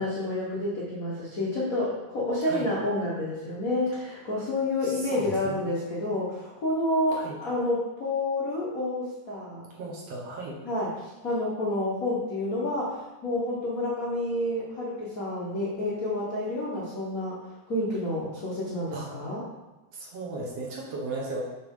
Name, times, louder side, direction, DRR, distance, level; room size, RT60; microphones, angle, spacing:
voice 1, 0.0-9.7 10.6-19.4, left 1 dB, 80° left, -6 dB, 0.7 m, -29 dB
voice 2, 4.8-5.6 7.1-7.4 9.8-10.6 18.9-19.1 19.9-21.4, right 2 dB, 60° right, -2 dB, 2.0 m, -35 dB
6.9 x 4.4 x 5.4 m, 1.1 s
omnidirectional pair, 3.7 m